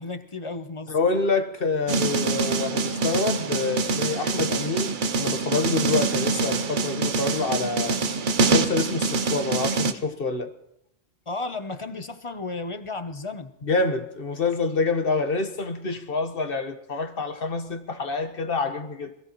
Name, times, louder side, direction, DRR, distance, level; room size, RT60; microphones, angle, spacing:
voice 1, 0.0-0.9 11.3-13.5, left 3 dB, 35° left, 0.7 m, -33 dB
voice 2, 0.9-8.0 8.4-10.5 13.6-19.1, left 3 dB, 60° left, 1.4 m, -27 dB
sound 1, 1.9-9.9, right 3 dB, 55° right, 0.9 m, -25 dB
27.0 x 16.0 x 3.0 m
omnidirectional pair, 1.1 m